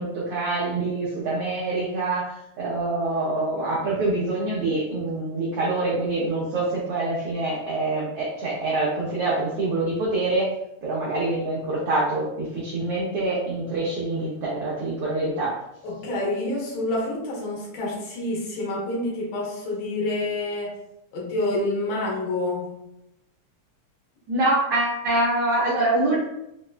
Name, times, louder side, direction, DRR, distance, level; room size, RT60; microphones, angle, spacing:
voice 1, 0.0-10.5 10.8-15.6 24.3-26.2, right 2 dB, 90° right, -6 dB, 1.2 m, -25 dB
voice 2, 15.8-20.8 21.1-22.7, left 2 dB, 90° left, -3 dB, 2.4 m, -28 dB
5.2 x 2.2 x 2.3 m, 0.83 s
omnidirectional pair, 3.4 m